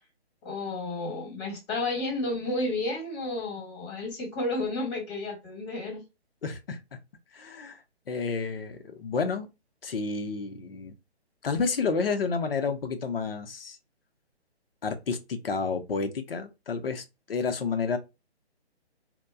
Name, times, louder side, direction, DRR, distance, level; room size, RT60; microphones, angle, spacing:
voice 1, 0.4-6.0, left 2 dB, 25° left, 1.3 m, -31 dB
voice 2, 6.4-6.8 7.3-9.5 9.8-10.9 11.4-13.8 14.8-18.0, left 4 dB, 60° left, 0.7 m, -30 dB
4.1 x 2.2 x 2.2 m
figure-of-eight pair, 145°, 33 cm